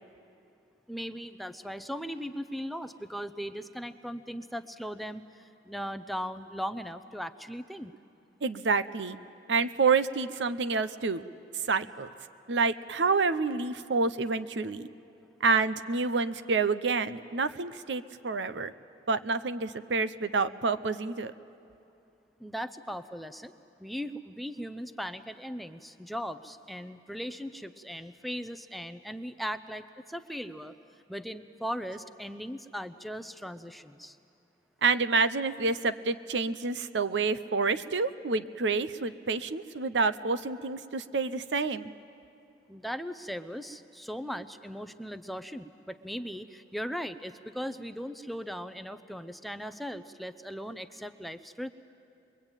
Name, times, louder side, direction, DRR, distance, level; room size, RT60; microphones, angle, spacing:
voice 1, 0.9-7.9 22.4-23.5 23.8-30.7 31.1-34.2 42.7-51.7, equal, ahead, 10 dB, 0.6 m, -38 dB
voice 2, 8.4-9.2 9.5-11.2 11.7-12.1 12.5-14.9 15.4-18.7 19.1-21.3 34.8-41.9, right 4 dB, 85° right, 12 dB, 0.7 m, -28 dB
23.5 x 22.5 x 9.0 m, 2.7 s
head